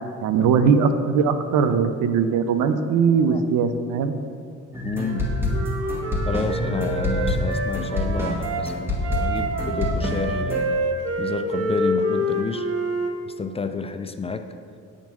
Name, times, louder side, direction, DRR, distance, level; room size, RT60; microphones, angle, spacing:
voice 1, 0.2-4.2, right 6 dB, 85° right, 9 dB, 0.6 m, -20 dB
voice 2, 3.1-3.5 4.8-5.3 6.3-10.7 11.2-12.7 13.3-14.6, left 4 dB, 20° left, 9 dB, 0.3 m, -30 dB
sound 1, 4.7-10.6, left 2 dB, 10° right, 1.6 m, -26 dB
Wind instrument woodwind instrument, 5.0-8.6 9.0-13.1, right 1 dB, 50° right, 0.9 m, -27 dB
8.6 x 3.7 x 6.1 m, 2.4 s
cardioid pair, 90°, 30 cm